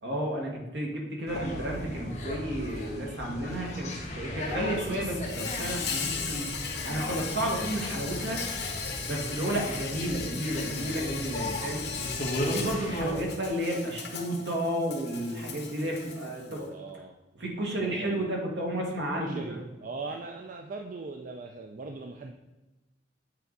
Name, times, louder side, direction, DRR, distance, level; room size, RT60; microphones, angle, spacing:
voice 1, 0.0-8.4 9.0-11.8 12.3-16.7 17.3-19.6 20.1-20.2, right 1 dB, 70° right, 0 dB, 1.7 m, -32 dB
sound 1, 1.3-13.3, left 1 dB, 40° left, 1.3 m, -36 dB
Insect, 5.2-16.6, left 6 dB, 65° left, 1.3 m, -37 dB
voice 2, 16.5-17.1 17.8-18.2 19.2-22.3, right 3 dB, 50° right, 3 dB, 0.5 m, -40 dB
8.5 x 4.5 x 4.0 m, 1.1 s
head